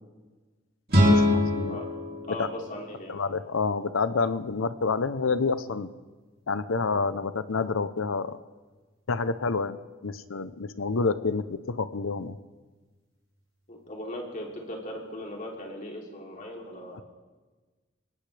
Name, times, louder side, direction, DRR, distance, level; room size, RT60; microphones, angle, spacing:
sound 1, 0.9-3.9, left 1 dB, 50° right, 3.0 m, -25 dB
voice 1, 1.1-1.8 2.4-2.5 3.1-5.9 6.5-8.4 9.1-9.8 10.0-12.4, left 4 dB, 80° left, 13 dB, 0.8 m, -28 dB
voice 2, 1.7-3.2 13.7-17.0, left 1 dB, 40° left, -1 dB, 3.1 m, -39 dB
23.0 x 18.5 x 3.4 m, 1.3 s
head